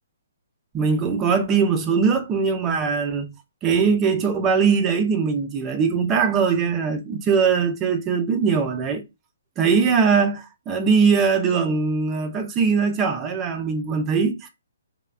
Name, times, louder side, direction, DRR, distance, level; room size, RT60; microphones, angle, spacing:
voice 1, 0.7-3.3 3.6-9.0 9.6-14.5, right 5 dB, 15° right, 0.3 m, -21 dB
3.2 x 2.0 x 2.2 m
hypercardioid pair, 165°, 0 cm